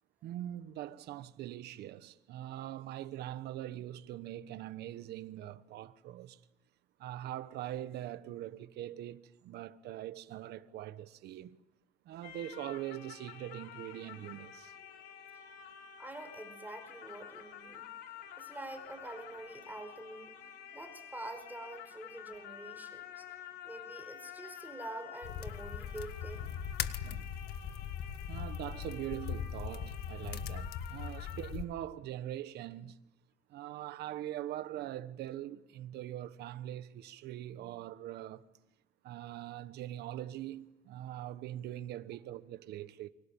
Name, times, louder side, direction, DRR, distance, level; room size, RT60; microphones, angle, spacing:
voice 1, 0.2-6.4 7.0-11.6 12.0-14.7 27.0-27.3 28.3-33.0 33.5-38.5 39.0-43.1, right 13 dB, 75° right, 1.4 m, -42 dB
sound 1, 12.2-31.5, left 9 dB, 85° left, 4.0 m, -50 dB
voice 2, 16.0-17.9 18.4-20.4 20.7-23.3 23.6-26.5, right 2 dB, 10° right, 4.8 m, -46 dB
sound 2, 25.2-31.6, left 8 dB, 70° left, 1.7 m, -40 dB
30.0 x 25.0 x 7.3 m
cardioid pair, 110°, 17 cm